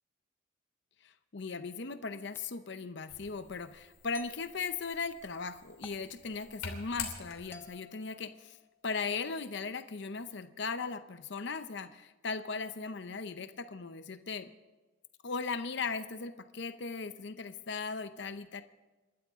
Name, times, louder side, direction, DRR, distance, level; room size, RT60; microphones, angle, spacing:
voice 1, 1.0-8.6 8.8-14.5 15.2-18.6, left 4 dB, 60° left, 11 dB, 0.7 m, -38 dB
sound 1, 2.3-2.6 4.1-4.4 5.8-6.1 7.5-8.9, left 3 dB, 10° left, 0.7 m, -53 dB
sound 2, 3.1-7.8, left 5 dB, 85° left, 3.0 m, -46 dB
28.0 x 12.5 x 3.6 m, 1.2 s
head